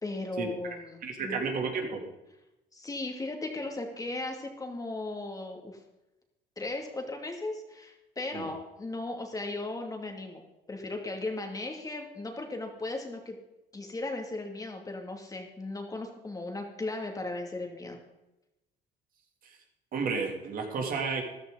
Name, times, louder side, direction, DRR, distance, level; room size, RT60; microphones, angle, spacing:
voice 1, 0.0-1.4 2.7-5.8 6.6-10.4 10.7-13.4 13.7-18.0, left 2 dB, 20° left, 3 dB, 2.6 m, -36 dB
voice 2, 1.0-2.0 8.3-8.5 19.9-21.2, right 5 dB, 55° right, 2 dB, 3.0 m, -31 dB
14.0 x 12.5 x 4.0 m, 0.96 s
cardioid pair, 110°, 17 cm